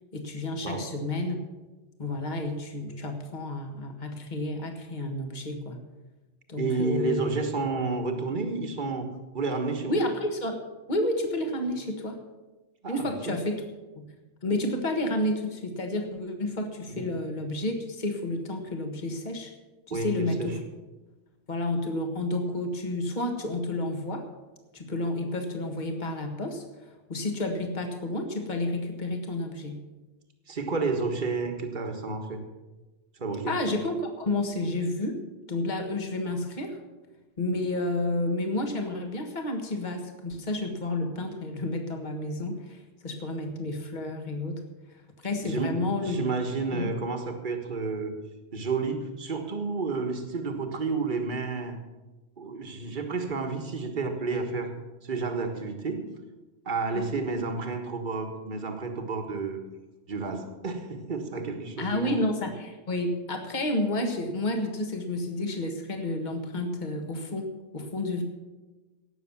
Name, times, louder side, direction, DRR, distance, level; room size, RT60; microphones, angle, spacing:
voice 1, 0.1-1.4 2.0-5.8 6.5-7.3 9.9-10.6 10.9-12.2 12.9-13.6 14.0-14.1 14.4-19.5 19.9-20.6 21.5-24.3 24.7-29.8 33.5-35.2 35.5-36.8 37.4-44.6 45.2-46.2 46.7-46.9 56.9-57.2 61.8-68.2, left 1 dB, 40° left, 4 dB, 1.7 m, -30 dB
voice 2, 6.6-9.1 9.3-10.0 12.8-13.4 16.9-17.1 19.9-20.5 30.5-32.4 33.2-33.5 45.4-48.1 48.5-51.8 52.4-54.7 55.0-56.1 56.7-59.6 60.1-62.2, right 4 dB, 40° right, 4 dB, 1.7 m, -31 dB
18.0 x 7.0 x 7.2 m, 1.2 s
omnidirectional pair, 1.3 m